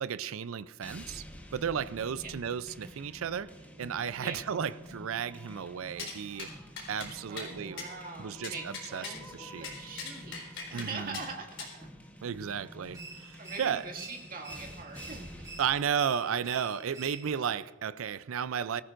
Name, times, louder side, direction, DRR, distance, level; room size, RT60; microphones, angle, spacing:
voice 1, 0.0-1.2 1.5-6.5 6.9-7.9 8.2-9.0 9.3-9.7 10.7-11.2 12.2-13.8 15.6-18.8, right 7 dB, 70° right, 0.4 m, -34 dB
sound 1, 0.8-15.8, equal, 10° left, 1.2 m, -49 dB
sound 2, 6.0-6.1 6.4-6.5 6.8-7.1 7.4-7.5 7.8-7.9 8.4-9.2 9.6-10.9 11.1-11.3 11.6-11.7, left 4 dB, 60° left, 3.9 m, -40 dB
voice 2, 7.3-11.9 13.4-15.5, right 4 dB, 45° right, 2.1 m, -43 dB
sound 3, 12.9-17.6, right 3 dB, 15° right, 1.7 m, -48 dB
23.0 x 14.5 x 2.6 m
head